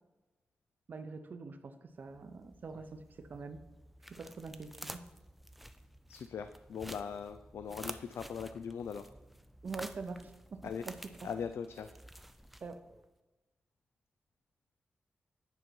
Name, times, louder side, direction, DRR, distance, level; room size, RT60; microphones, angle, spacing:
voice 1, 0.9-3.6 4.1-5.0 9.6-11.3 12.6-12.8, right 4 dB, 50° right, 8 dB, 0.7 m, -45 dB
sound 1, 2.0-13.0, equal, 5° right, 0.3 m, -51 dB
voice 2, 6.1-9.1 10.6-10.8 11.2-11.9, left 7 dB, 90° left, 10 dB, 0.3 m, -40 dB
9.1 x 5.3 x 4.5 m, 1.1 s
wide cardioid pair, 155°, 4 cm